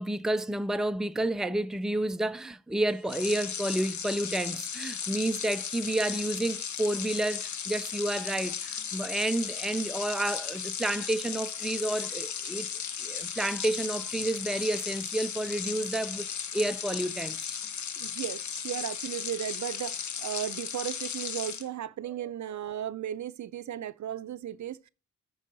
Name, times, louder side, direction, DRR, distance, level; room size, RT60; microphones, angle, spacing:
voice 1, 0.0-12.7 13.0-17.5, right 1 dB, ahead, 0.4 m, -30 dB
sound 1, 3.0-21.7, left 7 dB, 70° left, 0.9 m, -36 dB
voice 2, 18.0-24.9, right 10 dB, 70° right, 0.6 m, -36 dB
13.5 x 4.7 x 3.9 m
wide cardioid pair, 110°, 30 cm